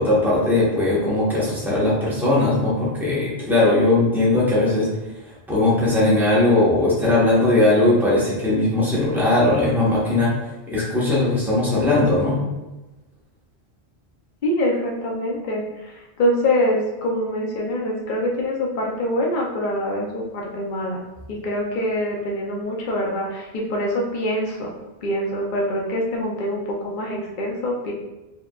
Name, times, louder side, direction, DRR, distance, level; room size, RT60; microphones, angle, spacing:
voice 1, 0.0-4.9 5.5-10.4 10.7-12.4, left 2 dB, ahead, -7 dB, 1.1 m, -19 dB
voice 2, 14.4-24.7 25.0-27.9, left 1 dB, 55° left, -1 dB, 0.8 m, -25 dB
4.8 x 3.2 x 2.4 m, 1.0 s
omnidirectional pair, 1.1 m